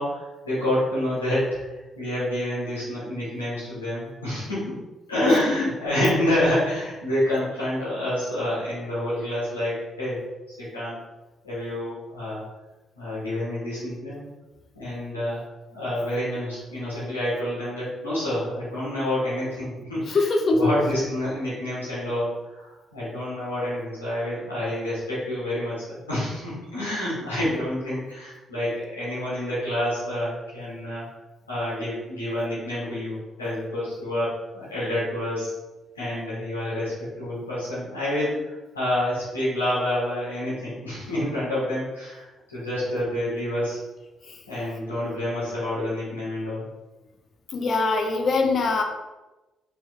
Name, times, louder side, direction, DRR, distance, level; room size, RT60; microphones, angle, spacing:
voice 1, 0.0-1.6 1.9-4.8 5.1-10.2 10.6-11.0 11.4-12.4 13.0-14.2 14.7-15.4 15.7-31.0 31.5-35.5 35.9-43.8 44.5-46.7, left 1 dB, 85° left, -10 dB, 1.4 m, -28 dB
voice 2, 20.1-20.7 44.3-44.4 47.5-48.8, left 3 dB, 50° left, 3 dB, 0.6 m, -22 dB
4.5 x 3.2 x 3.1 m, 1.1 s
figure-of-eight pair, 40°, 0 cm